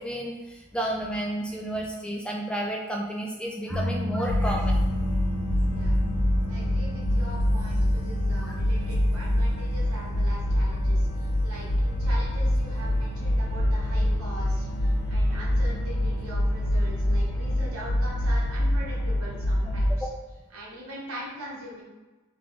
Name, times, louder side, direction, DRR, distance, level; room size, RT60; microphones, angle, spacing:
voice 1, 0.0-4.8 19.7-20.1, right 1 dB, 5° left, -1 dB, 0.3 m, -32 dB
sound 1, 3.7-18.0, left 1 dB, 35° right, 0.8 m, -36 dB
sound 2, 4.3-19.9, left 1 dB, 85° left, 0.7 m, -25 dB
voice 2, 6.5-20.1 20.5-21.8, equal, 70° right, -4 dB, 1.3 m, -42 dB
3.4 x 3.2 x 3.8 m, 1.2 s
head